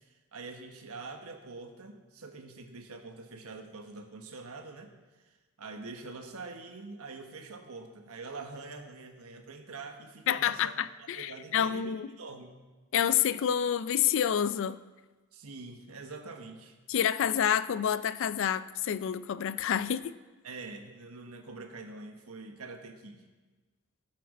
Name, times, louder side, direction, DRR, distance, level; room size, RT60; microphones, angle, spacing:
voice 1, 0.1-4.9 5.6-10.7 11.1-12.6 15.3-16.8 20.4-23.2, right 3 dB, 90° right, 5 dB, 1.2 m, -45 dB
voice 2, 10.3-12.1 12.9-14.8 16.9-20.1, left 9 dB, 60° left, 16 dB, 0.3 m, -28 dB
13.5 x 8.5 x 4.1 m, 1.3 s
head